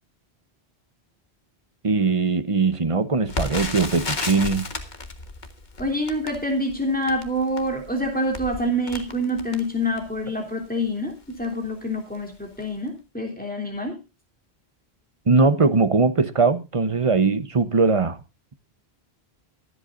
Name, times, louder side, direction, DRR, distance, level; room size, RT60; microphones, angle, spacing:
voice 1, 1.8-4.7 15.3-18.2, right 4 dB, 35° right, 0.9 m, -20 dB
Crackle, 3.3-10.3 10.9-11.0 11.3-11.5 12.1-12.3 12.6-12.7, left 3 dB, 45° left, 1.5 m, -34 dB
voice 2, 5.8-11.1 11.4-14.0, equal, 10° left, 3.1 m, -26 dB
23.5 x 8.1 x 2.5 m
omnidirectional pair, 1.1 m